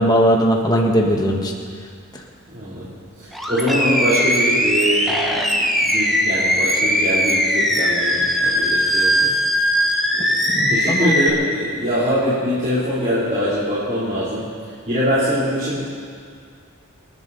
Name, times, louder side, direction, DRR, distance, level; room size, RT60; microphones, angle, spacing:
voice 1, 0.0-1.5 2.1-2.2 10.5-11.2, equal, 20° left, 0 dB, 1.7 m, -18 dB
voice 2, 2.5-2.9 3.2-9.3 10.1-15.9, equal, 40° right, -10 dB, 3.5 m, -23 dB
Animal, 3.3-11.3, equal, ahead, 1.4 m, -19 dB
26.5 x 11.5 x 4.2 m, 2.1 s
head